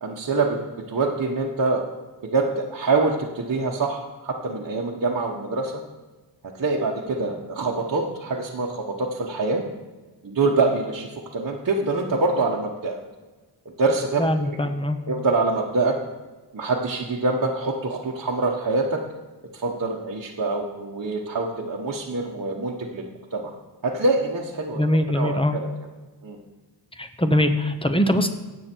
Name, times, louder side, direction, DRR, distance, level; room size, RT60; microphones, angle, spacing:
voice 1, 0.0-0.6 0.9-1.8 2.2-5.8 6.5-9.6 10.2-13.0 13.8-14.6 15.1-16.0 16.5-19.0 19.5-23.1 23.3-23.5 23.8-25.7 26.2-26.4, right 3 dB, 45° right, -2 dB, 1.1 m, -25 dB
voice 2, 14.2-15.0 24.8-25.6 27.0-28.4, left 1 dB, 10° left, 8 dB, 0.8 m, -22 dB
17.0 x 7.4 x 4.5 m, 1.2 s
wide cardioid pair, 120°, 45 cm